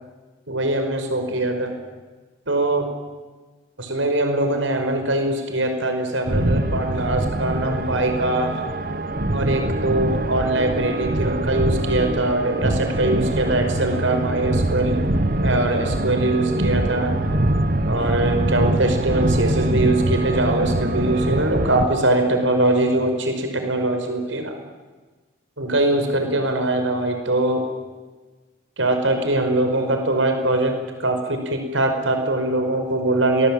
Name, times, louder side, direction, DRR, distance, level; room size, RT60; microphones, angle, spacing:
voice 1, 0.5-1.7 2.5-2.9 3.8-8.6 9.3-15.0 15.4-17.2 17.9-24.5 25.6-27.7 28.8-33.5, right 2 dB, 75° right, 6 dB, 5.3 m, -22 dB
sound 1, 6.3-21.9, right 1 dB, 45° right, 1.3 m, -23 dB
26.5 x 21.0 x 9.1 m, 1.3 s
head